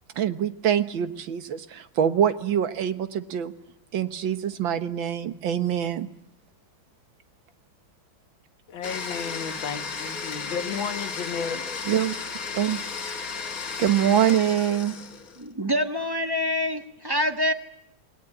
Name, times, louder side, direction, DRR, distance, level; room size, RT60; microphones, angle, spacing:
voice 1, 0.2-3.5 3.9-6.1 11.9-12.2 12.5-12.8 13.8-15.0, right 9 dB, 85° right, 2.0 m, -24 dB
voice 2, 8.7-11.9, left 6 dB, 85° left, 2.1 m, -33 dB
Domestic sounds home sounds, 8.8-15.5, left 5 dB, 50° left, 1.9 m, -34 dB
voice 3, 15.4-17.5, left 1 dB, 15° right, 1.2 m, -26 dB
28.0 x 19.5 x 9.9 m
omnidirectional pair, 2.1 m